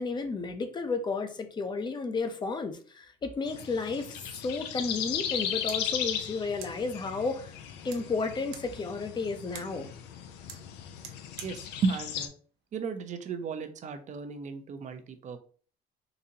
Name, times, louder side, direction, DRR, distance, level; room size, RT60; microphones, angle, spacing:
voice 1, 0.0-7.5 7.8-9.9, left 4 dB, 25° left, 0.6 m, -32 dB
sound 1, 3.5-12.3, left 9 dB, 90° left, 0.5 m, -37 dB
sound 2, 5.6-13.3, right 8 dB, 90° right, 0.7 m, -52 dB
voice 2, 11.4-12.3 12.7-15.4, right 4 dB, 45° right, 0.6 m, -34 dB
3.9 x 2.7 x 2.7 m
cardioid pair, 110°, 17 cm